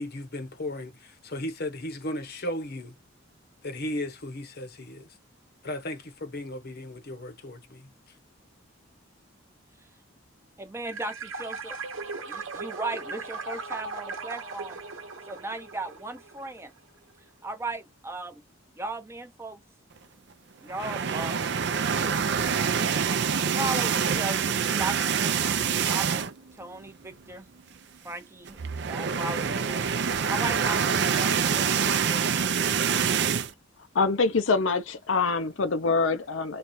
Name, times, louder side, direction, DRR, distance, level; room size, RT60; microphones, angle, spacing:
voice 1, 0.0-2.9 3.6-5.2 5.6-7.9, left 1 dB, 50° left, 1.0 m, -35 dB
voice 2, 10.6-11.8 12.3-14.8 15.3-16.7 17.4-18.4 18.8-19.6 20.6-21.4 23.6-25.6 25.9-26.3 26.5-27.5 28.0-28.6 28.8-32.2, right 2 dB, 15° right, 0.6 m, -37 dB
sound 1, 10.8-16.6, right 3 dB, 75° right, 1.0 m, -38 dB
sound 2, 20.7-26.5 26.9-27.0 27.3-27.4 28.5-33.5, right 6 dB, 60° right, 0.5 m, -26 dB
voice 3, 33.9-36.6, left 4 dB, 70° left, 0.6 m, -25 dB
3.2 x 2.4 x 4.1 m
head